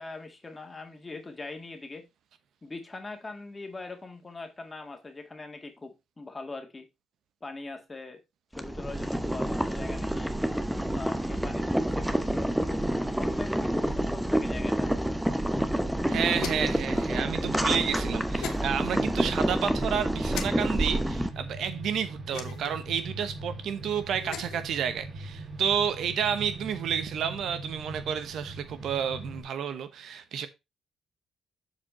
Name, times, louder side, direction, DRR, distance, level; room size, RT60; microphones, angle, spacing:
voice 1, 0.0-2.0 2.6-6.9 7.4-8.2 8.5-10.3 10.9-15.1, left 3 dB, 25° left, 1.8 m, -42 dB
Boiling, 8.5-21.3, right 1 dB, 5° right, 0.9 m, -28 dB
voice 2, 16.1-30.5, right 8 dB, 70° right, 1.0 m, -30 dB
sound 1, 16.4-16.8 18.4-18.6 20.3-20.5 22.3-22.8 24.1-24.6, left 8 dB, 90° left, 1.2 m, -38 dB
sound 2, 20.2-29.4, right 2 dB, 45° right, 4.3 m, -41 dB
7.3 x 4.8 x 4.2 m
cardioid pair, 90°, 0 cm